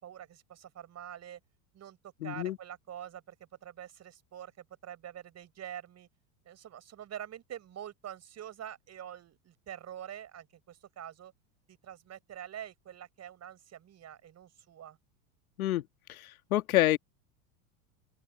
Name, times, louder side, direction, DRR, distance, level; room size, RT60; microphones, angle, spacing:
voice 1, 0.0-1.4 1.7-3.4 3.6-6.1 6.5-11.3 11.7-15.0, right 10 dB, 40° right, 7.1 m, -46 dB
voice 2, 2.2-2.6 15.6-15.8 16.5-17.0, left 15 dB, 85° left, 1.8 m, -26 dB
open air
hypercardioid pair, 95°, 42 cm